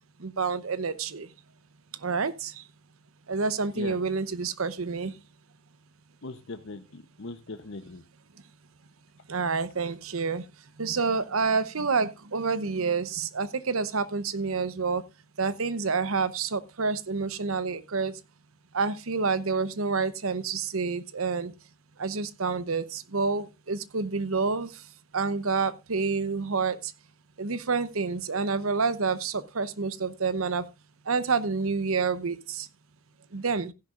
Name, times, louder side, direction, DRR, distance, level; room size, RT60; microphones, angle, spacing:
voice 1, 0.2-1.3 1.9-2.7 3.3-5.2 9.3-10.5 10.8-15.0 15.4-18.2 18.7-21.5 22.0-26.9 27.4-30.7 31.0-32.7 33.3-33.7, right 4 dB, 75° right, 0.9 m, -28 dB
voice 2, 6.2-8.0, left 3 dB, 60° left, 0.9 m, -40 dB
15.5 x 10.5 x 2.5 m
head